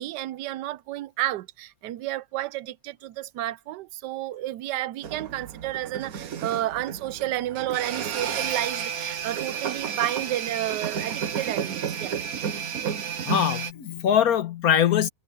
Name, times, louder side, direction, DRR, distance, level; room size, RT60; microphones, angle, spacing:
voice 1, 0.0-12.1, right 14 dB, 85° right, 1.2 m, -31 dB
sound 1, 5.0-13.7, right 7 dB, 60° right, 1.5 m, -31 dB
voice 2, 13.3-15.1, left 9 dB, 60° left, 1.6 m, -22 dB
omnidirectional pair, 1.8 m